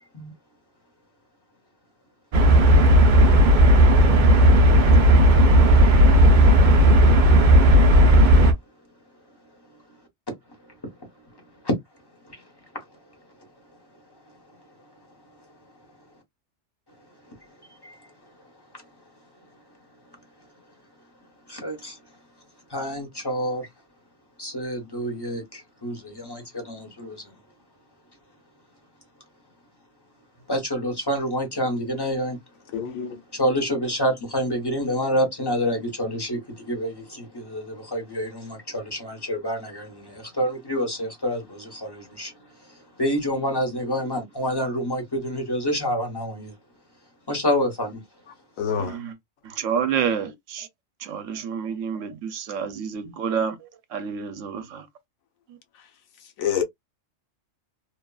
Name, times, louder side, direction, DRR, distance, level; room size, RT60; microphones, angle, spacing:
sound 1, 2.3-8.5, equal, 50° right, 0.6 m, -14 dB
voice 1, 21.5-22.0 22.7-23.7 24.4-27.3 30.5-32.4 33.3-42.3 43.0-46.5 47.3-48.0, equal, 20° left, 1.2 m, -27 dB
voice 2, 32.7-33.2 48.6-49.0 56.4-56.6, left 8 dB, 90° left, 1.2 m, -26 dB
voice 3, 48.8-49.1 49.6-50.7 51.0-53.6 53.9-54.8, right 7 dB, 75° right, 1.0 m, -28 dB
2.9 x 2.3 x 2.3 m
omnidirectional pair, 1.4 m